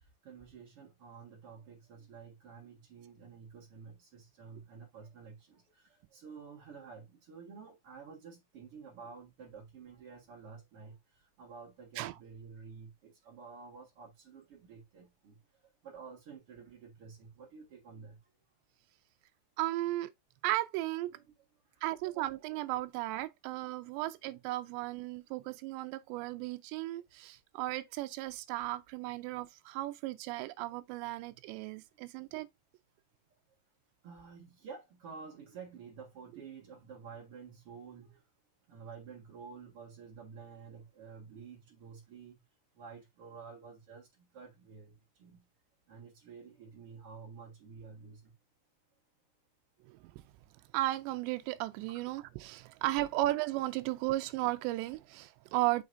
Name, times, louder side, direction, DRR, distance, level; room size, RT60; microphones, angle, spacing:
voice 1, 0.2-5.6 6.1-10.9 11.4-15.3 15.8-18.2 21.1-21.2 34.0-38.2 38.7-42.3 42.8-44.1 44.3-44.9 45.2-45.4 45.9-48.3 51.9-52.0, right 5 dB, 50° right, 1.7 m, -50 dB
voice 2, 19.6-20.1 20.4-21.1 21.8-32.5 49.8-50.1 50.7-55.8, right 17 dB, 85° right, 2.8 m, -35 dB
6.2 x 6.0 x 2.6 m
omnidirectional pair, 5.1 m